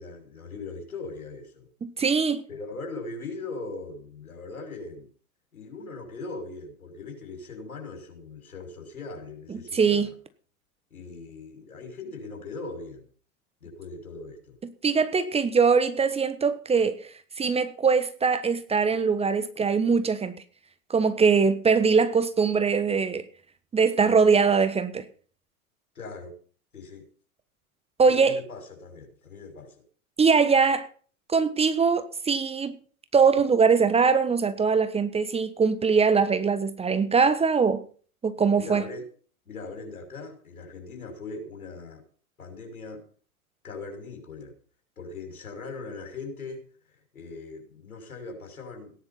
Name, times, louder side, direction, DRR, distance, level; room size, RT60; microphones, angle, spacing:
voice 1, 0.0-1.7 2.5-5.1 5.5-10.1 10.9-13.0 13.6-14.6 25.9-26.3 26.7-27.0 28.1-29.7 38.6-39.1 39.5-42.0 42.4-43.0 43.6-44.5 45.0-46.7 47.1-48.9, left 3 dB, 80° left, 6.4 m, -40 dB
voice 2, 1.8-2.5 9.5-10.1 14.8-17.1 17.4-20.3 20.9-23.2 23.7-25.0 28.0-28.4 30.2-30.9 31.3-32.8 33.1-37.8 38.2-38.8, right 5 dB, 15° right, 1.2 m, -22 dB
17.5 x 10.5 x 5.8 m
figure-of-eight pair, 95°, 43 cm